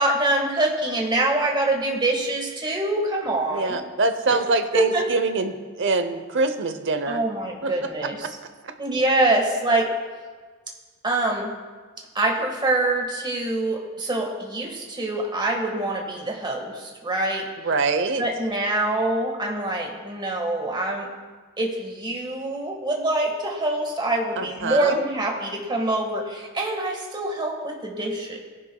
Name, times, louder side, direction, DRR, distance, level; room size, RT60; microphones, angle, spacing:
voice 1, 0.0-3.8 4.3-4.4 4.7-5.0 7.1-8.4 8.8-9.9 11.0-11.5 12.2-17.5 18.2-21.1 21.6-28.4, right 2 dB, 20° right, 1 dB, 1.6 m, -25 dB
voice 2, 3.5-7.2 7.6-7.7 17.6-18.2 24.4-25.0, right 3 dB, 60° right, 9 dB, 0.8 m, -24 dB
19.0 x 10.5 x 2.3 m, 1.5 s
head